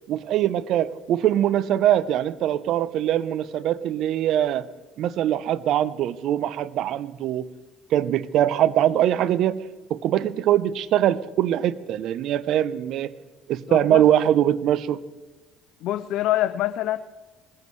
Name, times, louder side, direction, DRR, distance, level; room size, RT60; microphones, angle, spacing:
voice 1, 0.1-4.7 5.0-7.5 7.9-9.6 9.9-13.1 13.5-15.0, right 11 dB, 65° right, 17 dB, 0.6 m, -22 dB
voice 2, 13.7-14.1 15.8-17.0, left 14 dB, 70° left, 11 dB, 0.5 m, -25 dB
20.5 x 15.0 x 3.3 m, 1.2 s
hypercardioid pair, 65°, 0 cm